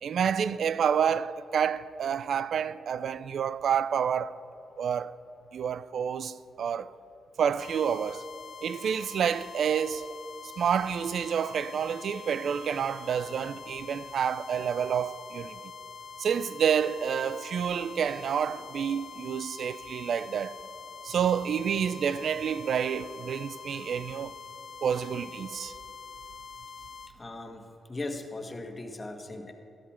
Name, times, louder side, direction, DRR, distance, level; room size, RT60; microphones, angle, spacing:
voice 1, 0.0-4.3 4.8-5.1 5.5-6.9 7.4-8.2 8.6-10.1 10.6-15.6 16.2-20.5 21.0-24.3 24.8-25.7, right 7 dB, 70° right, 0.4 m, -29 dB
sound 1, 7.6-27.1, left 6 dB, 60° left, 0.6 m, -45 dB
voice 2, 27.1-29.5, left 2 dB, 30° left, 1.5 m, -38 dB
13.5 x 12.0 x 4.4 m
cardioid pair, 60°, 0 cm